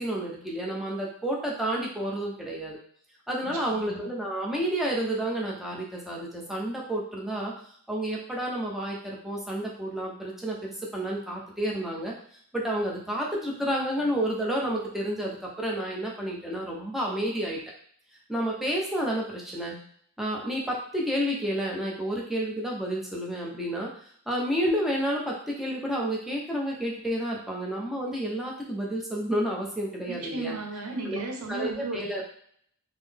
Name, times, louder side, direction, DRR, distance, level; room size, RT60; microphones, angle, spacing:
voice 1, 0.0-2.8 3.3-7.5 7.9-12.1 12.5-17.6 18.3-19.8 20.2-23.9 24.3-30.6 31.1-31.2 31.5-32.2, right 1 dB, ahead, -3 dB, 0.6 m, -30 dB
voice 2, 3.4-4.1 30.1-32.2, right 2 dB, 85° right, 2 dB, 0.8 m, -35 dB
3.7 x 2.0 x 3.3 m, 0.63 s
head